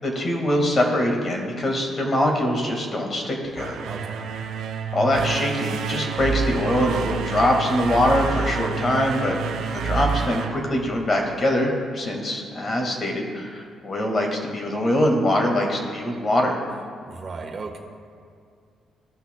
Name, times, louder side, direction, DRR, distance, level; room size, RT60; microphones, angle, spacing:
voice 1, 0.0-3.7 4.9-9.4 9.7-16.6, left 1 dB, 40° left, 1 dB, 1.7 m, -23 dB
sound 1, 3.4-11.4, right 6 dB, 75° right, 0.6 m, -29 dB
voice 2, 3.9-4.2 17.0-17.8, right 4 dB, 45° right, 2 dB, 1.2 m, -35 dB
16.5 x 5.9 x 2.2 m, 2.3 s
cardioid pair, 90°, 0 cm